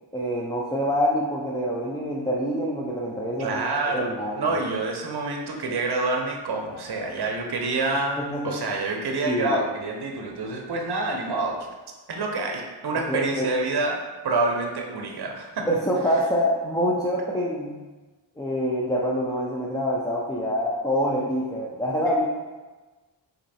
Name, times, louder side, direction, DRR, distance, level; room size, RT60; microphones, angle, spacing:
voice 1, 0.1-3.6 3.9-4.5 8.2-8.5 9.2-9.6 13.1-13.5 15.7-17.8 18.4-22.3, equal, 10° left, -5 dB, 0.5 m, -26 dB
voice 2, 3.4-11.6 12.1-15.7, right 3 dB, 60° right, 1 dB, 0.7 m, -27 dB
4.3 x 2.8 x 4.1 m, 1.2 s
cardioid pair, 60°, 45 cm